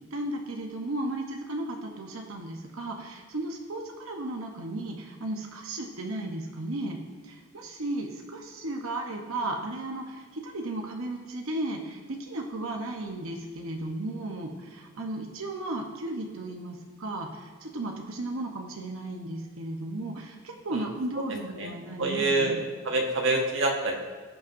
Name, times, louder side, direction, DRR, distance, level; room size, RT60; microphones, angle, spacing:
voice 1, 0.1-22.6, right 2 dB, 85° right, 2 dB, 0.9 m, -35 dB
voice 2, 22.0-22.5 22.8-24.0, right 2 dB, 65° right, 1 dB, 1.3 m, -26 dB
16.0 x 5.6 x 2.6 m, 1.5 s
head